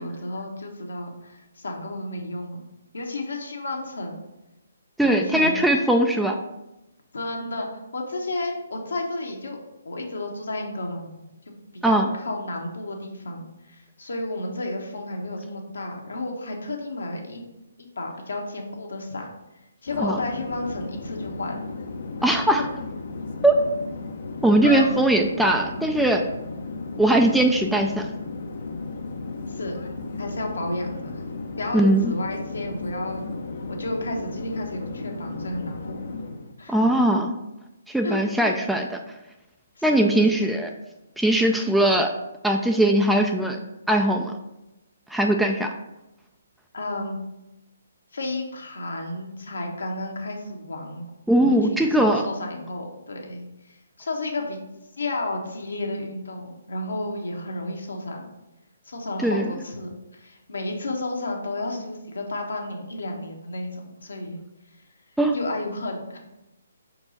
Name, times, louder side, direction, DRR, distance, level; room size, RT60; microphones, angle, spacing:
voice 1, 0.0-2.6 2.9-4.2 5.0-5.7 7.1-9.6 9.8-11.2 11.8-17.4 17.8-19.3 19.8-21.6 24.6-24.9 29.5-29.8 30.2-31.2 31.6-36.0 36.6-36.8 38.0-38.6 39.8-40.5 46.7-47.2 48.1-51.1 51.5-51.6 51.8-54.6 55.0-58.3 58.8-64.4 65.3-66.2, left 2 dB, 70° left, 1 dB, 1.3 m, -32 dB
voice 2, 5.0-6.4 11.8-12.1 20.0-20.2 22.2-22.6 23.4-23.6 24.4-26.2 27.0-28.1 31.7-32.1 36.7-37.4 37.9-39.0 39.8-40.7 41.2-42.1 42.4-43.6 43.9-44.3 45.1-45.7 51.3-52.2 59.2-59.5 65.2-65.3, right 1 dB, ahead, 3 dB, 0.4 m, -20 dB
Conversation / Chatter / Fixed-wing aircraft airplane, 19.9-36.5, left 3 dB, 55° left, 0.7 m, -35 dB
5.6 x 4.6 x 3.9 m, 0.96 s
figure-of-eight pair, 135°, 0 cm